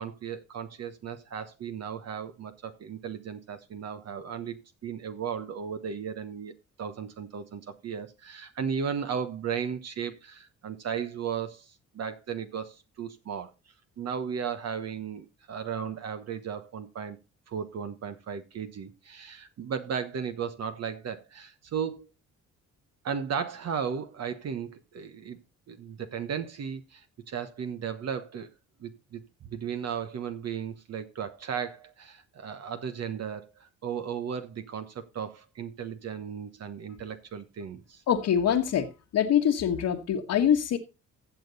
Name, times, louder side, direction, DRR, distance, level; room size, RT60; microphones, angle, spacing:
voice 1, 0.0-4.6 4.8-6.5 6.8-13.5 14.0-17.2 17.5-22.1 23.0-25.4 25.7-28.5 28.8-38.0, right 7 dB, 55° right, 9 dB, 1.2 m, -35 dB
voice 2, 38.1-40.8, left 9 dB, 70° left, -1 dB, 1.4 m, -24 dB
15.0 x 7.0 x 4.0 m, 0.29 s
cardioid pair, 90°, 30 cm